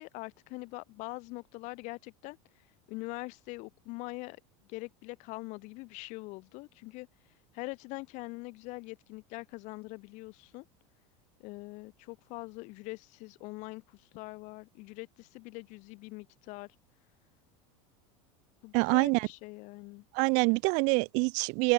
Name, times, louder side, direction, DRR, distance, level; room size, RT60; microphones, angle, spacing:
voice 1, 0.0-2.4 2.9-4.4 4.7-7.1 7.5-10.7 11.4-16.7 18.6-20.0, left 24 dB, 50° left, 2.1 m, -43 dB
voice 2, 18.7-19.3 20.1-21.7, right 32 dB, 50° right, 0.4 m, -26 dB
open air
supercardioid pair, 155°, 16 cm